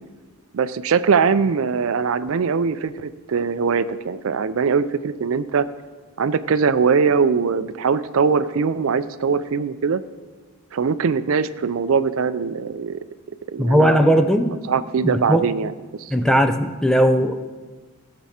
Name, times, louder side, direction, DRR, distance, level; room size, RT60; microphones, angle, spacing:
voice 1, 0.5-5.7 6.2-10.0 10.7-13.0 13.5-14.2 14.7-15.7 16.0-16.1, right 5 dB, 70° right, 14 dB, 0.4 m, -21 dB
voice 2, 13.6-14.6 15.0-15.4 16.1-17.4, equal, 5° left, 7 dB, 0.4 m, -18 dB
16.5 x 6.1 x 4.3 m, 1.4 s
head